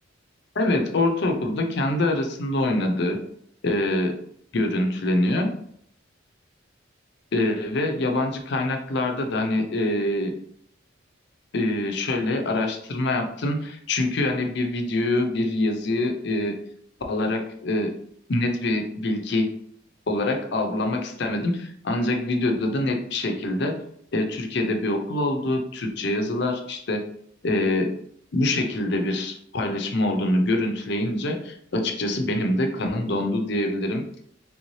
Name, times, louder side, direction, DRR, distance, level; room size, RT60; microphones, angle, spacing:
voice 1, 0.5-3.2 3.6-4.2 4.5-5.5 7.3-10.3 11.5-16.6 17.1-17.9 18.3-19.5 20.1-23.8 24.1-27.0 27.4-27.9 28.3-34.0, left 1 dB, 60° left, 4 dB, 0.6 m, -25 dB
3.4 x 2.7 x 3.1 m, 0.67 s
head